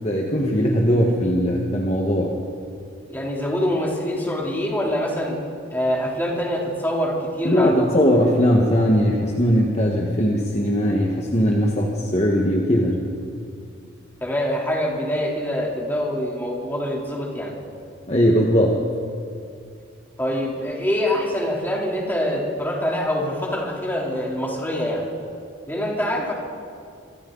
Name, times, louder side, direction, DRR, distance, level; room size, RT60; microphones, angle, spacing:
voice 1, 0.0-2.3 7.4-13.0 18.1-18.8, equal, 35° left, -1 dB, 1.6 m, -19 dB
voice 2, 3.1-5.4 5.7-8.0 14.2-17.5 20.2-25.1 25.7-26.3, equal, 10° left, -3 dB, 3.6 m, -25 dB
26.0 x 24.5 x 4.1 m, 2.4 s
head